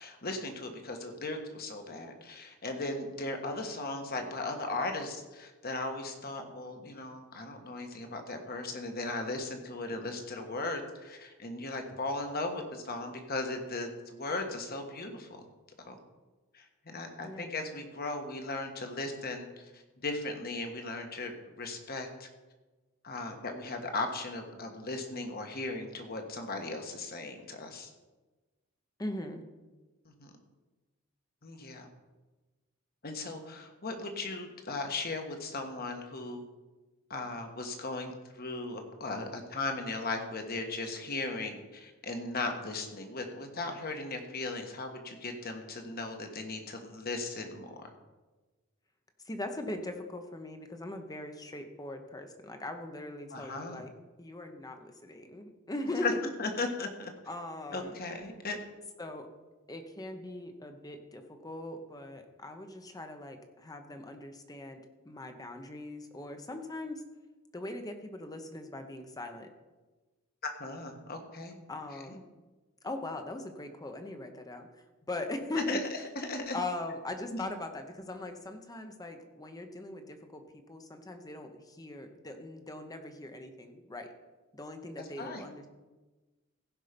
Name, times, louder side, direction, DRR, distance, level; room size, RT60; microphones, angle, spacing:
voice 1, 0.0-15.4 15.8-16.0 16.5-22.3 23.0-27.9 30.0-30.3 31.4-31.9 33.0-36.4 37.1-47.9 53.3-53.8 56.0-56.1 56.4-57.1 57.7-58.6 70.4-71.6 72.1-72.2 75.6-76.6 77.3-77.4 85.2-85.4, left 2 dB, 45° left, 4 dB, 1.4 m, -37 dB
voice 2, 17.2-17.6 29.0-29.4 49.2-53.9 54.2-56.2 57.3-58.0 59.0-59.3 59.7-67.0 67.5-69.5 71.7-72.2 72.8-75.8 76.5-84.1 84.5-85.7, left 2 dB, 20° left, 6 dB, 0.9 m, -40 dB
16.0 x 5.5 x 5.2 m, 1.2 s
head